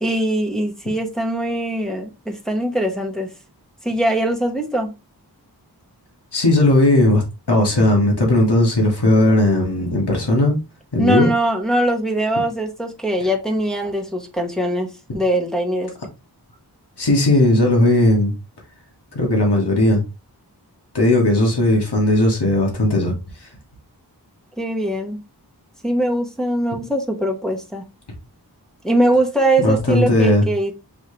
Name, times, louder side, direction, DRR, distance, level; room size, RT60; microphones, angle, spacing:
voice 1, 0.0-3.3 3.8-4.9 11.0-15.9 24.6-25.2 25.8-27.8 28.8-30.7, right 1 dB, ahead, 1.1 m, -21 dB
voice 2, 6.3-7.2 7.5-10.6 10.9-11.3 17.0-18.3 19.1-20.0 20.9-23.2 23.4-23.5 29.6-30.4, left 1 dB, 85° left, 1.4 m, -16 dB
5.8 x 2.8 x 3.1 m
wide cardioid pair, 50°, 39 cm